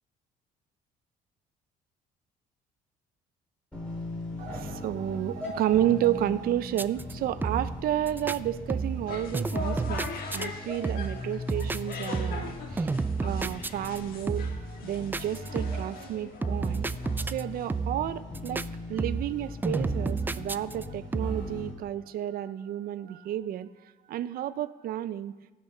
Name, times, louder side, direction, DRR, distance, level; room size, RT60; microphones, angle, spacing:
sound 1, 3.7-21.7, left 2 dB, 5° left, 4.2 m, -40 dB
voice 1, 4.4-12.9 13.2-16.9 17.2-23.7 24.1-25.3, right 12 dB, 60° right, 15 dB, 0.6 m, -31 dB
sound 2, 6.7-7.1 7.4-7.8 8.1-8.4 8.7-9.1 9.3-10.5 10.8-11.2 11.5-12.5 12.8-14.0 14.3-14.7 15.1-15.9 16.4-17.4 17.7-18.1 18.3-18.7 19.0-19.4 19.6-20.8 21.1-21.5, right 4 dB, 10° right, 0.3 m, -31 dB
sound 3, 8.9-17.9, left 5 dB, 60° left, 1.6 m, -42 dB
16.5 x 6.4 x 5.4 m, 1.2 s
cardioid pair, 110°, 17 cm